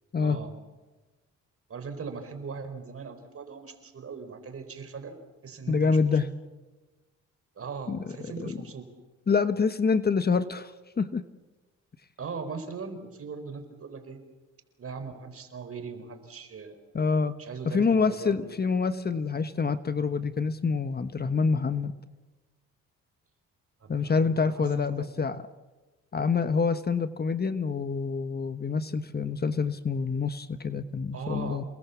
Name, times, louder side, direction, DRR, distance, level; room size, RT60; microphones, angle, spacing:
voice 1, 0.2-0.5 1.7-6.0 7.6-8.9 12.2-14.2 14.8-16.8 17.4-18.6 23.8-25.2 31.1-31.6, right 5 dB, 50° right, 8 dB, 4.7 m, -40 dB
voice 2, 5.7-6.3 7.9-8.0 8.4-8.5 9.3-11.2 16.9-17.4 17.6-21.9 23.9-25.4 26.1-31.6, left 5 dB, 30° left, 11 dB, 1.3 m, -26 dB
29.0 x 20.5 x 7.3 m, 1.2 s
cardioid pair, 90°, 30 cm